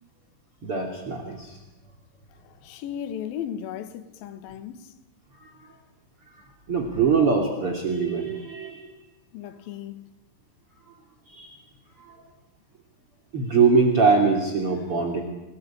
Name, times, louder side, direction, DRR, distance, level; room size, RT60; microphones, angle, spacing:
voice 1, 0.6-1.6 5.4-5.5 6.3-8.9 11.3-11.6 12.0-12.1 13.3-15.2, right 5 dB, 40° right, 3.4 m, -23 dB
voice 2, 2.4-4.9 9.3-10.1, left 9 dB, 75° left, 3.2 m, -36 dB
29.0 x 19.5 x 8.9 m
omnidirectional pair, 4.3 m